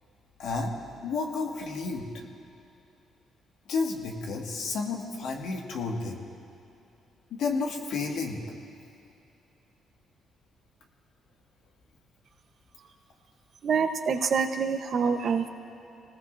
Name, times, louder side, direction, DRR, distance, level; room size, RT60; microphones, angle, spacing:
voice 1, 0.4-0.8 1.0-2.1 3.7-6.2 7.3-8.4, left 4 dB, 80° left, 0 dB, 1.9 m, -31 dB
voice 2, 13.6-15.5, right 6 dB, 55° right, 6 dB, 1.0 m, -26 dB
26.0 x 19.0 x 2.7 m, 2.7 s
cardioid pair, 90°, 0 cm